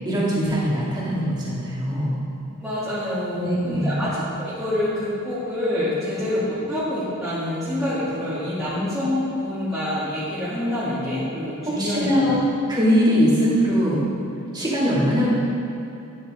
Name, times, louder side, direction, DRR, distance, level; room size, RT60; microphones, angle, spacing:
voice 1, 0.0-2.2 3.4-4.0 11.7-12.4 12.7-14.0 14.5-15.3, equal, 20° right, -8 dB, 2.8 m, -21 dB
voice 2, 2.6-12.4, left 1 dB, ahead, -16 dB, 2.9 m, -26 dB
13.0 x 9.7 x 3.8 m, 2.8 s
head